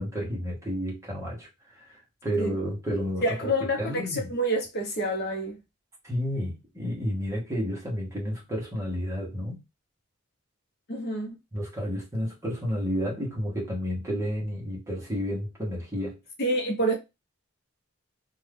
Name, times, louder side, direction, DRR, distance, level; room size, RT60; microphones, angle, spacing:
voice 1, 0.0-4.3 6.0-9.6 11.5-16.2, equal, 15° right, 1.1 m, -31 dB
voice 2, 3.2-5.6 10.9-11.4 16.4-16.9, right 1 dB, 50° left, 0.9 m, -27 dB
2.6 x 2.4 x 3.4 m
head